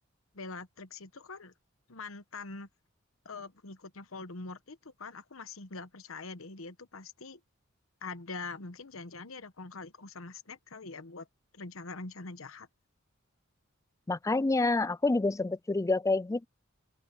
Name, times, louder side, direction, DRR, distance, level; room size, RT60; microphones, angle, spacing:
voice 1, 0.3-1.5 1.9-2.7 3.2-7.4 8.0-11.3 11.5-12.7, left 3 dB, 80° left, 1.1 m, -43 dB
voice 2, 14.1-16.5, left 3 dB, 15° left, 0.3 m, -28 dB
open air
head